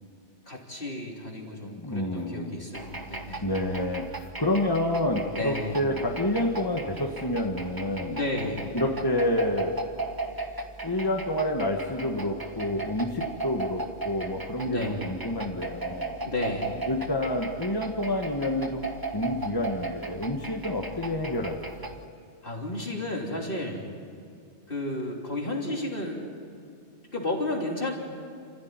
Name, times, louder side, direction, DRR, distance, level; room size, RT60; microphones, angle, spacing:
voice 1, 0.5-3.5 5.3-6.0 8.1-8.7 14.6-15.0 16.2-16.8 22.4-23.9 24.7-26.3 27.1-27.9, left 2 dB, 55° left, -1 dB, 3.5 m, -32 dB
voice 2, 1.6-2.6 3.4-8.2 8.7-9.9 10.8-16.1 16.9-22.0, left 1 dB, 20° left, 1 dB, 1.5 m, -28 dB
sound 1, 2.7-22.0, right 3 dB, 20° right, 1.1 m, -37 dB
28.5 x 15.0 x 9.6 m, 2.5 s
omnidirectional pair, 1.1 m